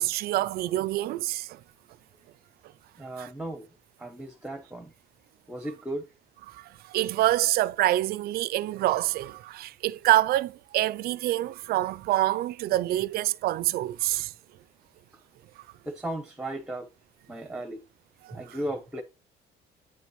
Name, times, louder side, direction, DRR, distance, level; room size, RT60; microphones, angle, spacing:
voice 1, 0.0-1.6 3.2-3.3 6.5-14.3 18.2-18.4, right 15 dB, 65° right, 0.4 m, -26 dB
voice 2, 3.0-3.7 4.0-4.9 5.5-6.1 15.1-15.2 15.8-16.9 17.3-17.8 18.3-19.0, right 1 dB, 5° right, 0.8 m, -36 dB
9.1 x 5.1 x 3.1 m
cardioid pair, 110°, 17 cm